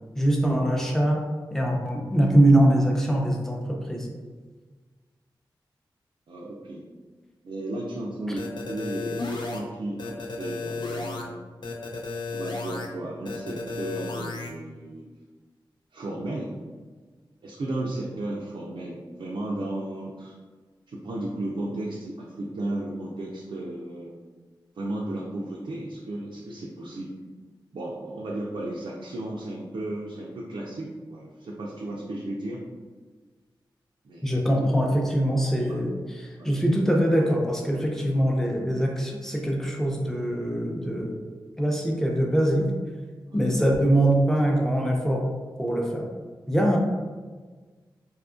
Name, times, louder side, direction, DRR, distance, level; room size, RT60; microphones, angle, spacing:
voice 1, 0.2-1.2 1.5-4.1 34.2-41.1 41.6-42.7 43.3-45.2 45.6-46.0 46.5-46.8, right 1 dB, 5° left, -1 dB, 0.6 m, -23 dB
voice 2, 6.3-6.9 7.4-11.4 12.3-15.1 15.9-16.5 17.4-20.3 20.9-24.1 24.8-27.1 27.7-32.6 34.0-34.3 34.6-34.7 35.7-35.8 36.4-36.9 43.3-43.5, right 1 dB, 70° right, -4 dB, 0.4 m, -34 dB
sound 1, 8.4-9.6 10.0-11.2 11.6-12.9 13.2-14.5, left 3 dB, 60° left, 0.5 m, -33 dB
2.7 x 2.3 x 2.4 m, 1.4 s
cardioid pair, 45°, 9 cm